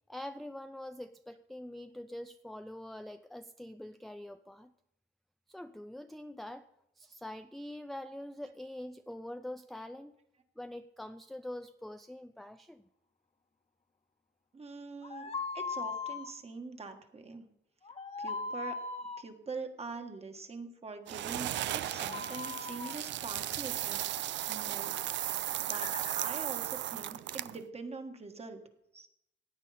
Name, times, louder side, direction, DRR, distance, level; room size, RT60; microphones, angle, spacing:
voice 1, 0.1-4.7 5.5-6.7 7.0-10.2 10.6-12.8, left 1 dB, ahead, 9 dB, 0.4 m, -44 dB
voice 2, 14.5-17.4 18.2-18.8 19.2-24.0 24.5-25.3 25.6-28.6 28.9-29.1, right 4 dB, 30° right, 6 dB, 1.6 m, -44 dB
sound 1, 15.0-16.3 17.8-19.2 21.7-23.0 25.7-26.1, left 4 dB, 30° left, 1.2 m, -39 dB
sound 2, 21.1-27.6, right 13 dB, 65° right, 0.4 m, -36 dB
16.0 x 9.0 x 4.2 m, 0.79 s
cardioid pair, 90°, 20 cm